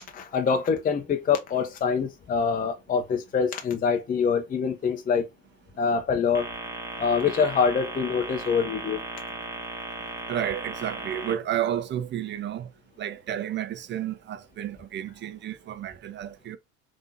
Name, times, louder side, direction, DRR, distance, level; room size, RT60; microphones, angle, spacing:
voice 1, 0.1-5.3 5.8-6.5 7.0-9.0, left 6 dB, 20° left, 0.6 m, -25 dB
sound 1, 6.3-11.3, right 2 dB, 10° right, 1.4 m, -36 dB
voice 2, 10.3-12.7 13.0-16.6, right 10 dB, 30° right, 0.7 m, -31 dB
3.6 x 2.7 x 4.0 m
hypercardioid pair, 75°, 38 cm